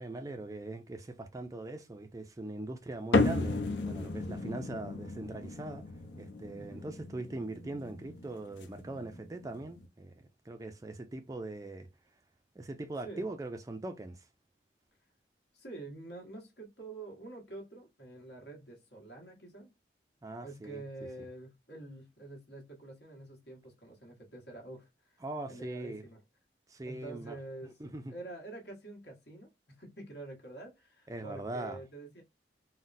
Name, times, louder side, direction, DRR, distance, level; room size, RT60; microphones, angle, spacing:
voice 1, 0.0-5.8 6.2-11.9 12.6-14.3 20.2-20.8 25.2-26.0 26.7-27.4 27.8-28.1 31.1-31.8, right 2 dB, 20° right, 0.3 m, -41 dB
sound 1, 3.1-9.9, left 3 dB, 85° left, 0.6 m, -34 dB
voice 2, 15.5-19.7 20.4-26.2 26.8-32.2, right 2 dB, 65° left, 1.3 m, -47 dB
3.8 x 2.1 x 2.5 m
head